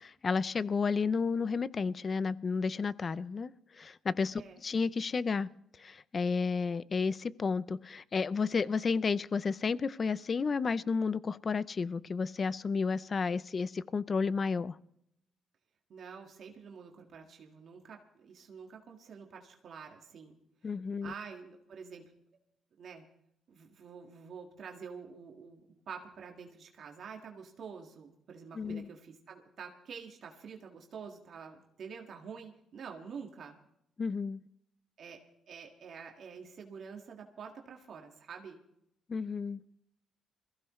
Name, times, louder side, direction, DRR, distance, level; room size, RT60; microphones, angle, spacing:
voice 1, 0.2-5.5 5.8-14.8 20.6-21.1 28.5-28.9 34.0-34.4 39.1-39.6, left 5 dB, 40° left, 0.5 m, -32 dB
voice 2, 15.9-20.4 21.0-22.1 22.8-23.0 23.5-33.6 35.0-38.6, right 6 dB, 60° right, 1.8 m, -47 dB
22.0 x 15.5 x 3.2 m
cardioid pair, 90°, 0 cm